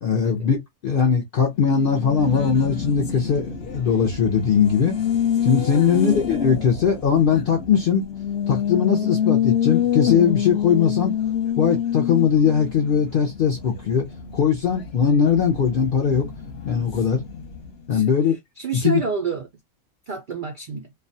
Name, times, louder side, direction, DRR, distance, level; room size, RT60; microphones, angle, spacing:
voice 1, 0.0-4.9 5.4-8.1 8.5-11.1 11.6-14.1 14.3-16.3 16.7-17.2 17.9-18.4 18.8-19.0, left 7 dB, 70° left, 0.5 m, -20 dB
Race car auto racing, 1.6-17.9, left 9 dB, 50° left, 0.9 m, -27 dB
Bowed string instrument, 3.4-6.8, right 1 dB, 25° left, 0.7 m, -45 dB
voice 2, 5.7-6.2 17.9-19.5 20.1-20.9, right 5 dB, 80° right, 0.4 m, -30 dB
2.4 x 2.2 x 2.6 m
omnidirectional pair, 1.5 m